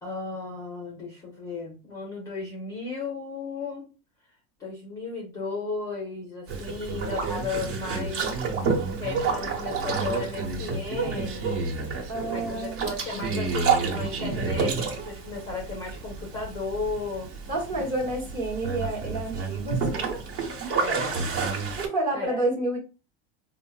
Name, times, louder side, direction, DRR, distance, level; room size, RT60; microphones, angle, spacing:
voice 1, 0.0-3.9 4.6-8.4 9.0-17.3 20.8-21.2 22.1-22.4, left 4 dB, 10° left, -2 dB, 0.4 m, -35 dB
Boat Water vehicle, 6.5-21.9, right 5 dB, 60° right, 1.1 m, -29 dB
voice 2, 12.1-12.9 17.5-20.2 21.8-22.8, right 2 dB, 30° right, 0 dB, 0.9 m, -29 dB
4.4 x 2.0 x 2.3 m, 0.32 s
supercardioid pair, 180°, 30 cm